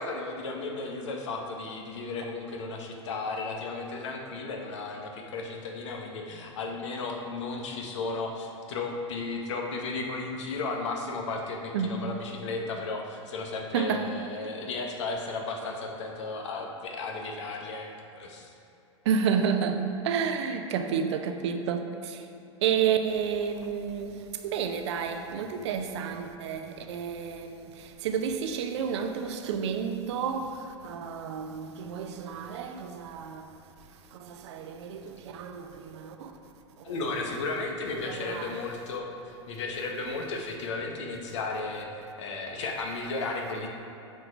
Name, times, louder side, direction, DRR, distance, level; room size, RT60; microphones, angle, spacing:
voice 1, 0.0-17.9 18.2-18.5 36.8-41.9 42.2-43.7, left 3 dB, 65° left, 1 dB, 1.2 m, -34 dB
voice 2, 11.7-12.1 13.7-14.1 19.0-22.2 22.6-33.5 34.1-36.3 36.8-37.1 38.1-38.6, right 7 dB, 65° right, 6 dB, 0.8 m, -31 dB
8.0 x 4.7 x 5.0 m, 2.8 s
hypercardioid pair, 95°, 16 cm